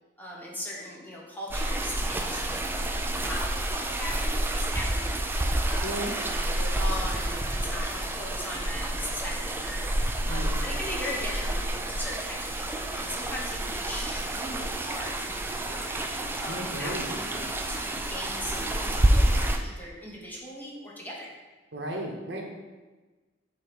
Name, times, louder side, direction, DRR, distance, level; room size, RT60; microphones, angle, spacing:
voice 1, 0.2-21.3, left 1 dB, 10° left, -3 dB, 1.0 m, -39 dB
sound 1, 1.5-19.6, right 1 dB, 10° right, 0.4 m, -29 dB
voice 2, 5.8-6.1 10.3-10.6 16.4-17.1 21.7-22.4, right 1 dB, 70° right, 0 dB, 1.0 m, -35 dB
7.4 x 2.9 x 5.1 m, 1.3 s
head